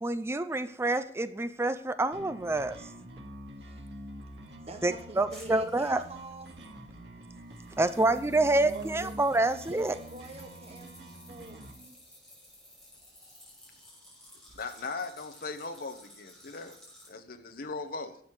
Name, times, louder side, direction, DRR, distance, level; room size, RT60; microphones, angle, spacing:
voice 1, 0.0-2.8 4.8-6.0 7.8-9.9, right 2 dB, 15° right, 12 dB, 0.5 m, -27 dB
sound 1, 2.1-11.7, equal, 75° right, 2.1 m, -46 dB
voice 2, 3.6-3.9 4.3-6.6 8.5-9.2 9.7-12.0, right 2 dB, 35° right, 5 dB, 1.3 m, -46 dB
sound 2, 5.3-6.9 7.5-17.1, left 1 dB, 5° left, 5.7 m, -55 dB
voice 3, 14.5-16.8 17.1-18.2, left 4 dB, 55° left, 7 dB, 1.2 m, -38 dB
12.5 x 7.8 x 4.8 m, 0.63 s
head